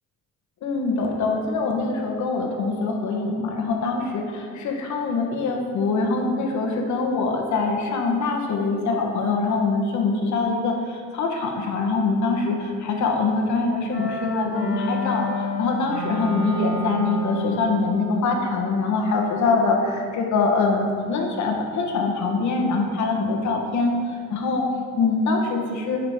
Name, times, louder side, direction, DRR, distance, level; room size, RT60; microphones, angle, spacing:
voice 1, 0.6-24.0 24.3-24.7 25.0-26.0, left 3 dB, 70° left, 2 dB, 1.3 m, -24 dB
sound 1, 13.9-17.7, equal, 50° left, 2.0 m, -29 dB
9.4 x 5.7 x 3.6 m, 2.2 s
cardioid pair, 90°, 30 cm